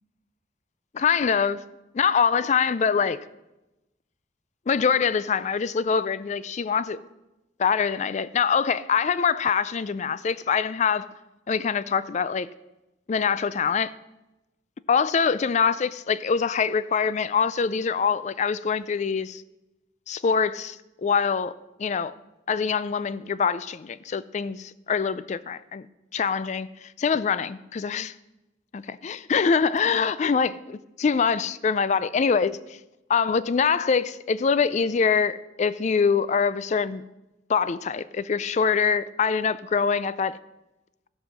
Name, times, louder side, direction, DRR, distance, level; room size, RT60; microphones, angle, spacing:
voice 1, 0.9-1.6 1.9-3.2 4.7-7.0 7.6-11.1 11.5-12.5 13.1-13.9 14.9-19.4 20.1-22.1 22.5-25.9 26.1-28.1 28.7-30.5 31.0-32.8 33.1-37.0 37.5-40.4, left 6 dB, 40° left, 0.3 m, -24 dB
14.5 x 5.5 x 6.3 m
head